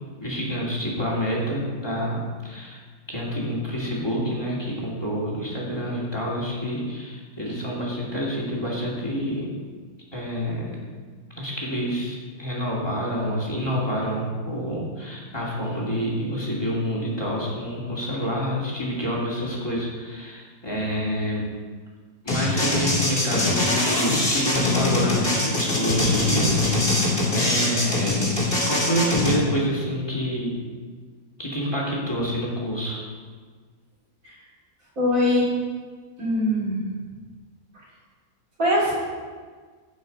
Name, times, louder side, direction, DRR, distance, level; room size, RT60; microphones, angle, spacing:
voice 1, 0.2-2.8 3.1-9.5 10.1-10.8 11.4-21.4 22.2-27.0 27.3-28.2 28.7-30.6 31.4-33.1, equal, 15° left, -4 dB, 2.8 m, -27 dB
sound 1, 22.3-29.4, left 2 dB, 40° left, 2.9 m, -22 dB
voice 2, 35.0-35.4 36.2-36.8 38.6-39.0, left 1 dB, 60° right, -7 dB, 4.2 m, -21 dB
16.0 x 6.0 x 5.4 m, 1.5 s
omnidirectional pair, 1.6 m